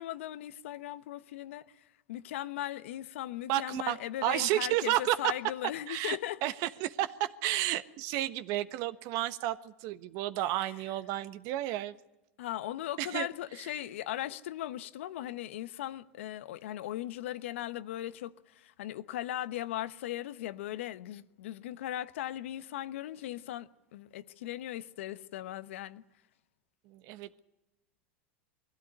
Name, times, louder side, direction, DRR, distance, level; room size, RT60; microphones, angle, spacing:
voice 1, 0.0-6.4 12.4-26.0, left 13 dB, 75° left, 1.0 m, -38 dB
voice 2, 3.5-5.3 5.9-11.9 13.0-13.3 26.8-27.4, right 14 dB, 55° right, 1.3 m, -32 dB
21.5 x 16.0 x 9.8 m
hypercardioid pair, 110°, 7 cm